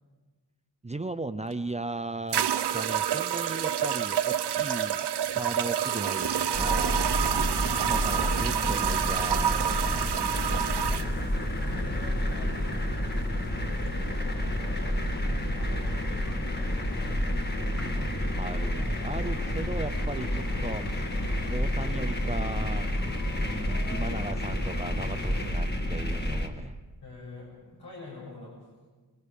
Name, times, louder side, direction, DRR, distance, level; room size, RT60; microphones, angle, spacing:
voice 1, 0.8-5.1 5.3-6.3 6.6-7.1 7.8-10.1 17.8-18.1 18.4-21.1 21.5-22.9 23.4-26.8, right 2 dB, 15° right, 9 dB, 0.5 m, -37 dB
sound 1, 1.5-1.6 2.3-11.1, right 10 dB, 75° right, 0.7 m, -28 dB
sound 2, 6.2-25.5, left 6 dB, 40° left, 0.6 m, -42 dB
sound 3, 6.5-26.5, equal, 25° left, 1.7 m, -30 dB
voice 2, 10.8-11.2 11.6-12.5 13.6-15.0 15.5-16.2 16.6-17.2 27.0-28.5, left 3 dB, 70° left, -3 dB, 6.8 m, -45 dB
26.0 x 20.5 x 5.1 m, 1.3 s
wide cardioid pair, 155°, 41 cm